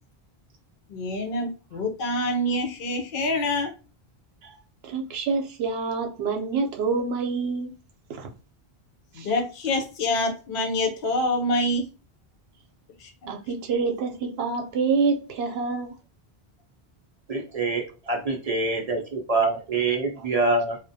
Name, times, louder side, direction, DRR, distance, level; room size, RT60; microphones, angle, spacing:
voice 1, 0.9-3.7 9.1-11.9 13.0-13.1, left 1 dB, 60° left, 0.7 m, -26 dB
voice 2, 4.8-7.7 8.1-8.3 9.2-9.3 13.3-16.0, right 4 dB, 80° right, 0.8 m, -27 dB
voice 3, 17.3-20.8, right 3 dB, 50° right, 0.4 m, -25 dB
2.4 x 2.1 x 2.6 m
omnidirectional pair, 1.0 m